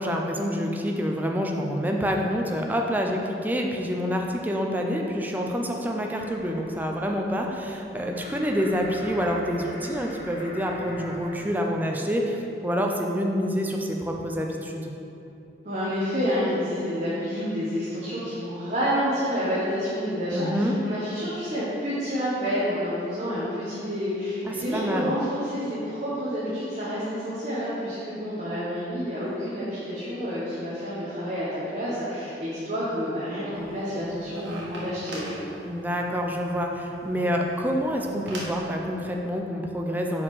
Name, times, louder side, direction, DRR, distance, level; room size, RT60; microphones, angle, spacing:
voice 1, 0.0-14.9 20.3-20.8 24.4-25.1 35.7-40.2, equal, 10° right, 1 dB, 0.5 m, -27 dB
sound 1, 6.1-11.5, equal, 50° left, 1.4 m, -42 dB
voice 2, 15.6-35.3, equal, 40° right, -9 dB, 1.0 m, -29 dB
sound 2, 33.5-38.6, right 1 dB, 85° right, 1.4 m, -41 dB
5.4 x 4.8 x 4.8 m, 2.9 s
head